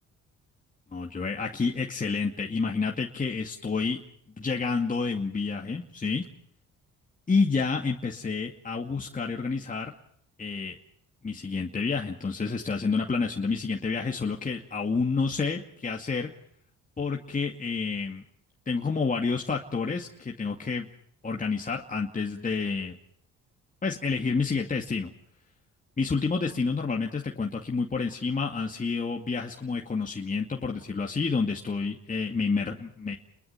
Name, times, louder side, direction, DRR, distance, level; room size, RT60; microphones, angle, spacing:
voice 1, 0.9-4.0 4.4-6.3 7.3-9.9 10.4-10.8 11.2-16.3 17.0-18.2 18.7-20.9 21.2-23.0 23.8-25.1 26.0-33.1, left 4 dB, 25° left, 0 dB, 2.4 m, -29 dB
30.0 x 22.0 x 5.9 m, 0.68 s
cardioid pair, 90°, 30 cm